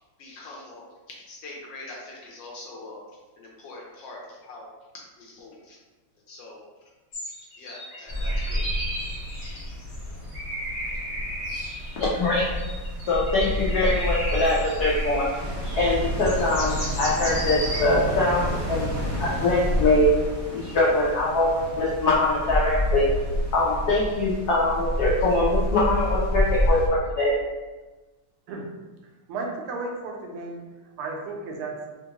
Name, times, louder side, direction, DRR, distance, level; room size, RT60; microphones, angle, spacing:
voice 1, 0.2-0.9 1.3-3.0 3.4-4.7 4.9-5.8 6.3-6.6 7.6-8.6, left 2 dB, 70° left, -3 dB, 1.2 m, -43 dB
sound 1, 7.1-15.4 15.6-17.8, equal, 45° left, 1.3 m, -35 dB
sound 2, 8.1-26.9, equal, 65° right, 0.3 m, -29 dB
voice 2, 12.0-12.6 13.1-15.3 15.7-20.1 20.5-23.1 23.5-27.4, left 2 dB, 85° left, -6 dB, 0.8 m, -23 dB
voice 3, 29.3-30.6 31.0-31.8, right 3 dB, 85° right, 1 dB, 1.5 m, -33 dB
3.7 x 2.5 x 2.8 m, 1.2 s
omnidirectional pair, 2.4 m